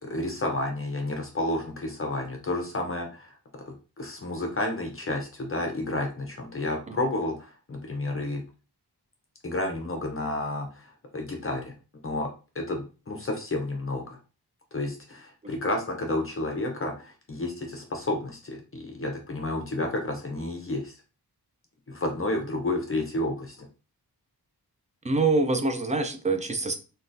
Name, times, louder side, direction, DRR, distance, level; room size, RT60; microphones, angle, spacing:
voice 1, 0.0-3.4 3.7-8.4 9.4-11.7 12.0-12.3 12.5-14.2 14.7-20.9 21.9-23.6, left 2 dB, 35° left, 2 dB, 0.6 m, -31 dB
voice 2, 25.0-26.8, right 3 dB, 20° right, 7 dB, 0.3 m, -25 dB
3.7 x 2.3 x 2.5 m, 0.33 s
wide cardioid pair, 120°, 41 cm